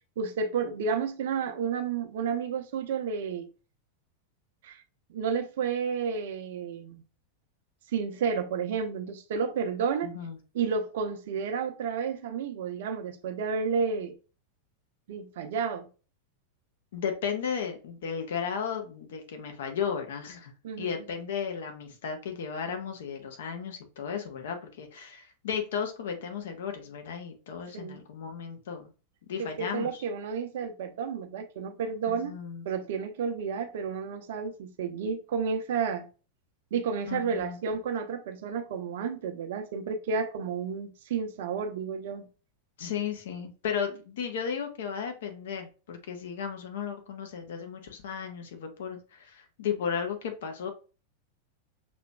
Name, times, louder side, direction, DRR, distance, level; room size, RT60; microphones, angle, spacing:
voice 1, 0.2-3.5 4.6-4.8 5.1-7.0 7.9-10.1 10.5-14.1 15.1-15.9 20.6-21.0 27.7-28.0 29.6-32.3 32.6-36.1 36.7-42.3, right 6 dB, 55° right, 0.6 m, -31 dB
voice 2, 10.0-10.4 16.9-20.5 20.8-28.9 29.3-30.0 32.1-32.7 37.1-37.6 42.8-50.7, left 7 dB, 60° left, 0.9 m, -34 dB
6.0 x 2.9 x 2.3 m
figure-of-eight pair, 90°, 0 cm